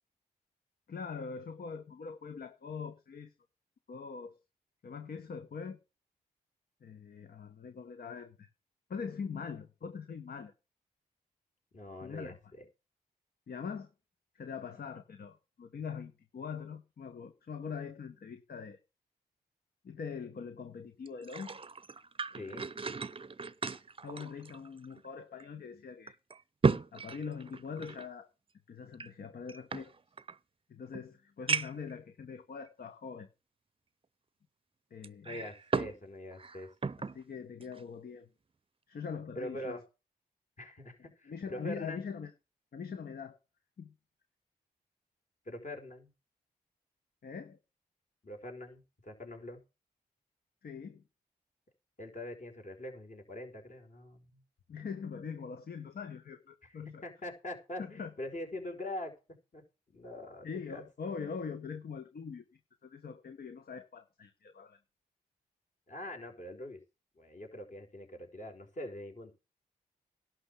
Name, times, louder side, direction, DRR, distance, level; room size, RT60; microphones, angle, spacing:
voice 1, 0.9-3.3 3.9-4.3 4.8-5.8 6.8-8.5 8.9-10.5 12.0-12.4 13.5-13.9 14.3-18.8 19.8-21.6 24.0-26.2 26.9-28.3 28.7-29.9 30.7-33.3 34.9-35.4 37.1-38.3 38.9-39.8 41.3-42.3 42.7-43.4 43.8-43.9 47.2-47.6 50.6-51.0 54.7-57.0 57.8-58.1 60.4-62.4 62.8-64.8, left 6 dB, 60° left, 1.3 m, -42 dB
voice 2, 11.7-12.7 22.3-22.7 35.2-36.9 39.3-39.8 40.6-42.1 45.4-46.1 48.2-49.6 52.0-54.4 56.6-59.1 59.5-59.6 59.9-61.2 65.9-66.8 67.1-69.3, left 1 dB, 45° left, 4.9 m, -43 dB
sound 1, 21.0-25.1 25.4-25.5 26.1-28.1 28.9-30.4 30.9-31.0 31.5-31.9 32.7-32.8 35.0-36.0 36.3-37.2 37.6-37.8, right 4 dB, 30° right, 0.7 m, -35 dB
11.5 x 5.9 x 8.3 m
supercardioid pair, 40°, 17 cm